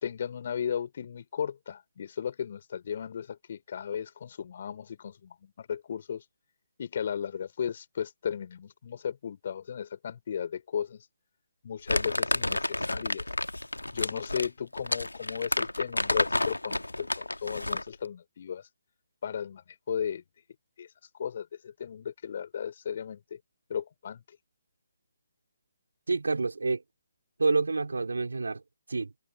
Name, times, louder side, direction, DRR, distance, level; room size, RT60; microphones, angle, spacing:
voice 1, 0.0-6.2 6.8-11.0 11.6-13.2 13.9-18.6 19.2-19.6 19.9-20.2 20.8-20.9 21.1-23.4 23.7-24.2, left 8 dB, 45° left, 3.0 m, -35 dB
Crumpling crinkling, 11.9-17.9, left 1 dB, 80° left, 1.7 m, -30 dB
voice 2, 26.1-26.8 27.4-28.6 28.9-29.1, right 3 dB, 65° right, 3.9 m, -28 dB
figure-of-eight pair, 140°, 0 cm